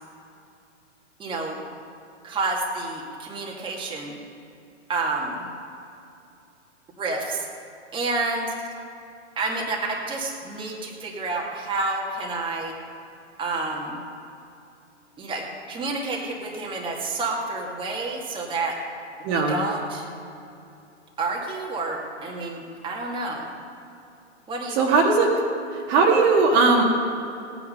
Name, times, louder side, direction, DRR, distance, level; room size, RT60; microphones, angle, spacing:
voice 1, 1.2-1.6 2.2-4.2 4.9-5.5 7.0-7.5 7.9-8.5 9.4-9.8 10.0-12.7 13.4-14.0 15.2-18.8 19.3-20.1 21.2-23.5 24.5-25.0, right 3 dB, 15° right, -2 dB, 2.0 m, -29 dB
voice 2, 19.2-19.6 24.7-25.3 25.9-26.8, right 4 dB, 35° right, 0 dB, 1.9 m, -18 dB
17.5 x 9.9 x 5.5 m, 2.7 s
hypercardioid pair, 125°, 36 cm